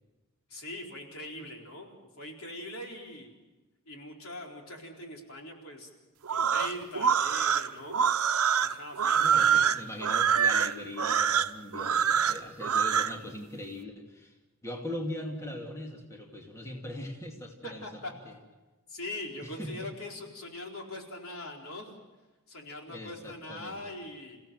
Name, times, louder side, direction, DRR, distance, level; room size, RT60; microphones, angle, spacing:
voice 1, 0.5-3.3 3.9-5.9 6.3-8.0 8.6-9.8 17.6-18.1 18.9-21.9 22.5-24.4, left 1 dB, 70° left, 1 dB, 4.3 m, -42 dB
sound 1, 6.2-13.1, right 7 dB, 85° right, 0.8 m, -25 dB
voice 2, 9.1-14.3 14.6-17.9 18.3-18.4 19.4-19.9 22.9-23.8, left 1 dB, 15° left, 1 dB, 2.4 m, -40 dB
29.0 x 16.5 x 7.7 m, 1.2 s
head